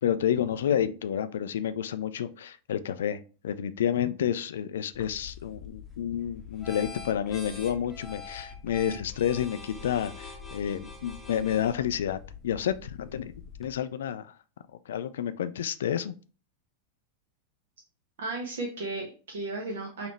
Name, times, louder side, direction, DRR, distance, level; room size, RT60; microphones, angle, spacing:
voice 1, 0.0-13.3 13.6-14.3 14.9-16.1, left 9 dB, 60° left, 12 dB, 0.3 m, -30 dB
sound 1, 4.9-13.8, left 5 dB, 10° left, 0.8 m, -44 dB
voice 2, 18.2-20.1, right 2 dB, 60° right, 0 dB, 0.9 m, -34 dB
4.1 x 3.0 x 3.2 m, 0.36 s
figure-of-eight pair, 90°, 0 cm